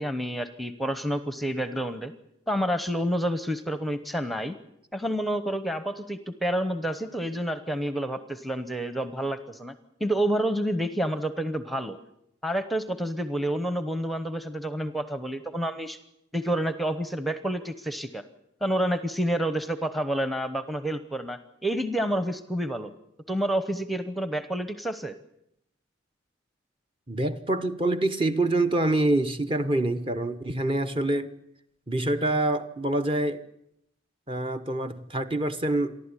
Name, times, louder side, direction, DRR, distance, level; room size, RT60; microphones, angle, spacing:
voice 1, 0.0-2.1 2.5-4.6 4.9-9.7 10.0-12.0 12.4-16.0 16.3-18.2 18.6-22.9 23.3-25.2, right 1 dB, ahead, 0.9 m, -29 dB
voice 2, 27.1-31.3 31.9-33.4 34.3-36.0, right 2 dB, 25° right, 0.9 m, -26 dB
28.5 x 12.0 x 9.8 m
head